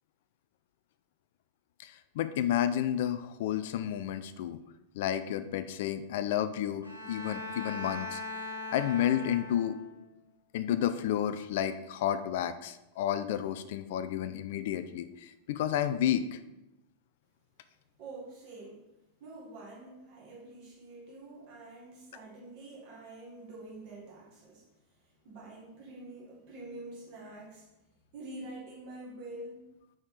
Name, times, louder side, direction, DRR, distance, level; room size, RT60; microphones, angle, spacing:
voice 1, 1.8-4.6 4.9-8.2 8.7-9.8 10.5-16.4, left 10 dB, 55° left, 11 dB, 0.3 m, -31 dB
Bowed string instrument, 6.8-10.0, left 2 dB, 90° right, 0.9 m, -40 dB
voice 2, 18.0-18.8 19.2-24.7 25.0-27.7 28.1-29.6, right 2 dB, 45° right, -3 dB, 2.1 m, -46 dB
5.0 x 4.2 x 4.7 m, 0.95 s
figure-of-eight pair, 90°, 0 cm